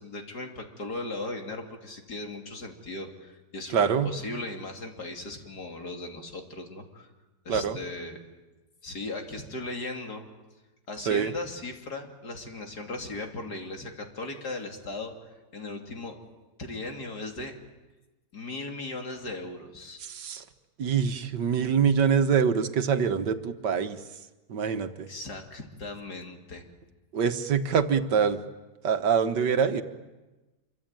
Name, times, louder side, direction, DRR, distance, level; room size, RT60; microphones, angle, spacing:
voice 1, 0.0-7.1 7.4-8.2 8.8-10.3 10.9-15.1 15.5-16.2 16.6-17.5 18.3-20.0 24.6-24.7 25.1-26.6, left 2 dB, 65° left, 3 dB, 3.5 m, -37 dB
voice 2, 3.7-4.1 7.5-7.8 11.1-11.3 20.0-20.4 20.8-24.0 24.5-25.1 27.1-28.4 28.8-29.8, right 7 dB, 85° right, 9 dB, 1.9 m, -25 dB
26.5 x 24.0 x 9.0 m, 1.1 s
omnidirectional pair, 1.8 m